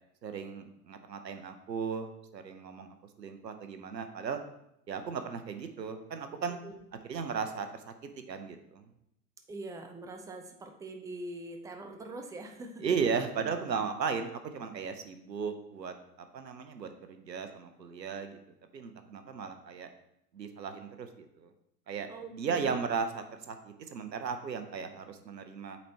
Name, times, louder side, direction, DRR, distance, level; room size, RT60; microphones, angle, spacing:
voice 1, 0.2-4.4 4.9-6.6 7.1-8.9 12.8-18.4 18.7-19.9 20.3-21.5 21.9-25.8, right 6 dB, 90° right, 8 dB, 0.7 m, -36 dB
voice 2, 6.5-6.8 9.5-12.8 22.1-22.7, right 2 dB, 5° right, 4 dB, 0.6 m, -43 dB
8.2 x 4.1 x 2.8 m, 0.82 s
figure-of-eight pair, 85°, 49 cm